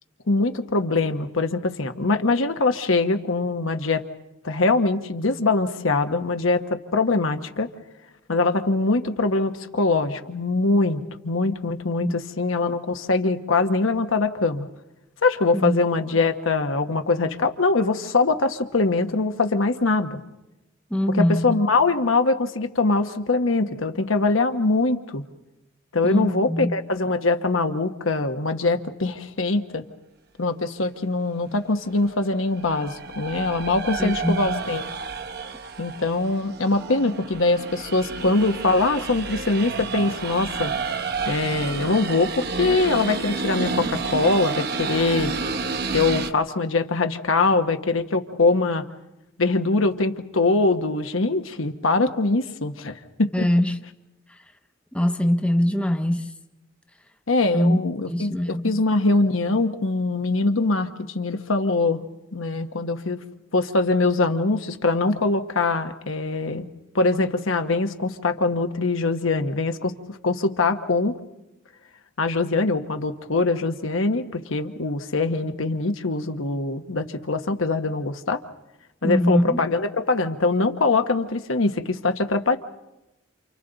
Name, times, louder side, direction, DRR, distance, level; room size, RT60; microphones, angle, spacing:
voice 1, 0.3-4.0 4.4-7.7 8.3-14.7 15.2-20.2 21.1-25.2 25.9-29.8 30.4-34.9 35.8-40.7 41.3-45.3 45.9-48.8 49.4-53.5 57.3-62.0 62.3-63.2 63.5-66.7 66.9-71.2 72.2-78.4 79.0-82.6, left 3 dB, 90° left, 1.2 m, -23 dB
voice 2, 20.9-21.5 26.0-26.8 34.0-34.4 53.3-53.8 54.9-56.3 57.5-57.8 58.1-58.8 79.0-79.6, left 1 dB, 5° left, 0.7 m, -22 dB
sound 1, 32.2-46.3, right 4 dB, 55° right, 0.9 m, -30 dB
28.5 x 28.5 x 4.0 m
head